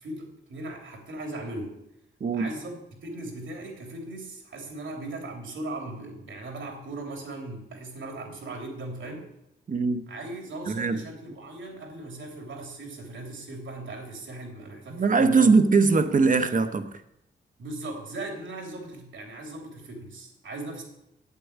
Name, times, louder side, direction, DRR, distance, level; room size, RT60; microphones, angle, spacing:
voice 1, 0.0-1.8 2.3-2.7 3.0-9.3 10.1-15.5 17.6-20.8, right 2 dB, 90° right, 3.4 m, -38 dB
voice 2, 2.2-2.5 9.7-10.0 10.7-11.0 14.9-16.9, right 4 dB, 45° right, 0.9 m, -21 dB
9.1 x 8.4 x 8.3 m
wide cardioid pair, 170°, 20 cm